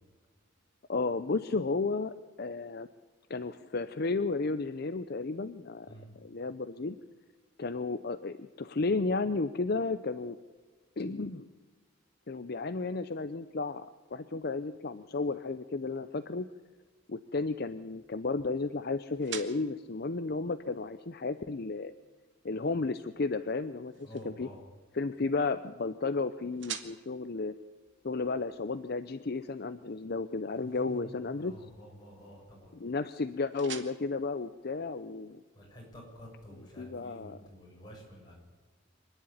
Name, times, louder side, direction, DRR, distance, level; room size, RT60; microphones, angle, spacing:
voice 1, 0.9-2.9 3.3-7.0 7.6-10.4 11.0-11.5 12.3-13.9 14.1-16.5 17.1-21.9 22.4-24.5 24.9-27.5 28.0-31.5 32.7-35.4 36.6-37.4, left 3 dB, 50° left, 11 dB, 0.6 m, -33 dB
sound 1, 16.6-35.4, right 8 dB, 60° right, 1.7 m, -51 dB
voice 2, 24.0-24.6 30.6-31.1 31.4-32.7 35.6-38.4, equal, 20° left, -3 dB, 7.1 m, -49 dB
25.0 x 10.5 x 9.9 m, 1.4 s
head